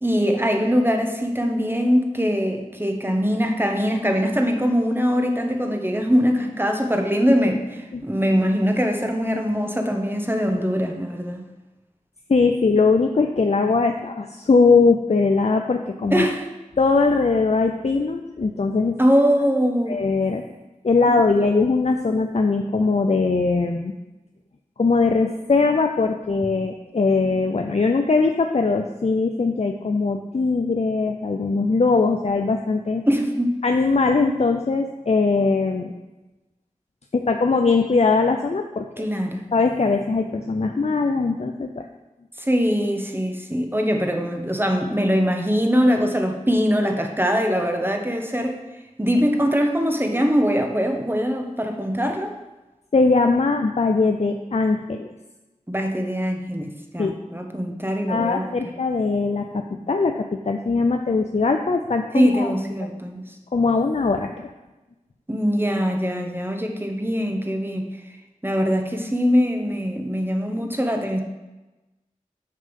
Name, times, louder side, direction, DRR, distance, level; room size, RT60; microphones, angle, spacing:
voice 1, 0.0-11.4 16.1-16.5 19.0-20.0 21.1-21.5 33.1-33.6 39.0-39.5 42.4-48.6 49.0-52.3 55.7-58.4 62.1-63.3 65.3-68.2 68.4-71.2, equal, 15° right, 3 dB, 1.0 m, -22 dB
voice 2, 12.3-16.3 16.8-19.0 19.9-20.4 20.8-23.9 24.8-33.0 33.6-35.9 37.1-39.1 39.5-41.9 52.9-55.1 57.0-57.2 58.1-62.5 63.5-64.5, left 4 dB, 50° left, 4 dB, 0.5 m, -20 dB
6.5 x 5.4 x 5.4 m, 1.1 s
wide cardioid pair, 40°, 14 cm